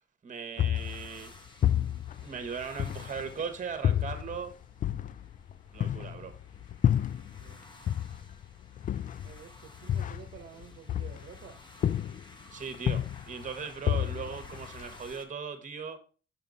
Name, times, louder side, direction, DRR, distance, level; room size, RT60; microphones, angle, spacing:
voice 1, 0.2-1.3 2.2-4.5 5.7-6.3 12.5-16.0, right 6 dB, 40° right, 1.4 m, -38 dB
sound 1, 0.6-3.4 3.8-7.6 7.9-11.5 11.8-12.4 12.7-15.1, left 10 dB, 40° left, 0.4 m, -30 dB
sound 2, 0.7-15.3, left 1 dB, 25° left, 1.5 m, -54 dB
voice 2, 6.0-6.3 7.4-7.7 8.9-11.6, right 8 dB, 65° right, 1.0 m, -51 dB
5.8 x 5.8 x 4.0 m
cardioid pair, 90°, 20 cm